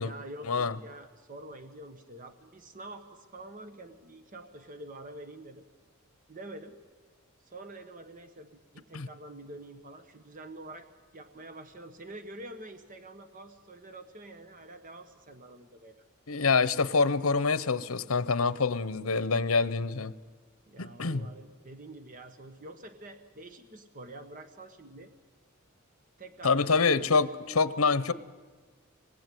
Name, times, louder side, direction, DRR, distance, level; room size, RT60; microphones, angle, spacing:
voice 1, 0.0-5.6 6.3-6.7 7.4-16.0 20.7-25.1 26.2-26.7, right 1 dB, 40° right, 1.3 m, -47 dB
voice 2, 16.3-20.2 20.8-21.2 26.4-28.1, left 4 dB, 80° left, 0.9 m, -26 dB
25.5 x 20.0 x 9.3 m
head